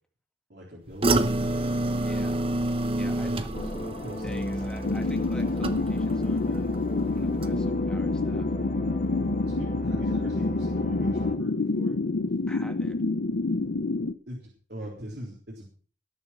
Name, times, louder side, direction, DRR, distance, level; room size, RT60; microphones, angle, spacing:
voice 1, 0.5-1.9 2.9-4.5 9.4-11.9 12.3-12.4 14.3-15.7, equal, 65° right, -3 dB, 3.8 m, -42 dB
sound 1, 1.0-6.2 6.5-7.0 7.4-7.5, right 2 dB, 30° right, 0.8 m, -28 dB
voice 2, 1.9-2.5 3.0-3.5 4.2-6.7 7.1-8.5 12.5-13.0, equal, 5° left, 4 dB, 2.0 m, -47 dB
sound 2, 3.5-11.4, equal, 45° left, 2.3 m, -34 dB
sound 3, 4.8-14.1, left 3 dB, 90° left, 0.7 m, -28 dB
19.0 x 7.3 x 5.9 m, 0.42 s
head